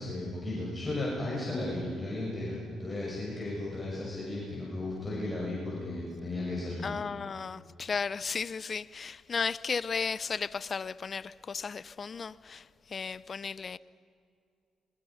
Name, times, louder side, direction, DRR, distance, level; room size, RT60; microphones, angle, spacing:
voice 1, 0.0-7.0, left 2 dB, 20° left, 6.3 m, -35 dB
voice 2, 6.8-12.6 12.9-13.8, left 5 dB, 40° left, 0.6 m, -34 dB
26.5 x 23.5 x 5.7 m
cardioid pair, 90°, 0 cm